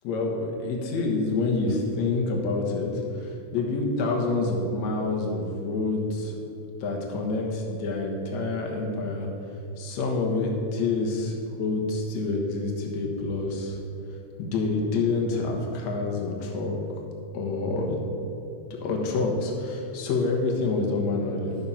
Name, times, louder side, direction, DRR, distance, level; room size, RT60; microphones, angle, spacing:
voice 1, 0.0-6.4 6.8-9.3 9.8-13.8 14.4-16.8 17.3-18.0 18.7-21.6, left 3 dB, 65° left, 0 dB, 2.5 m, -27 dB
12.0 x 6.8 x 5.6 m, 2.6 s
omnidirectional pair, 3.5 m